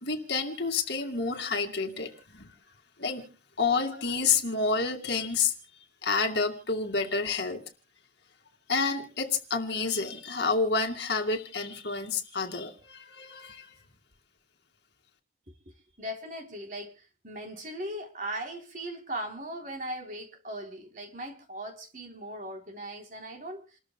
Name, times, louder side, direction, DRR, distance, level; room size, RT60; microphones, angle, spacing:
voice 1, 0.0-2.5 3.0-3.3 3.6-5.5 6.0-7.6 8.7-13.7, left 4 dB, 70° left, 2.5 m, -29 dB
voice 2, 16.0-23.8, right 1 dB, 45° right, 3.6 m, -39 dB
29.0 x 13.5 x 2.3 m
head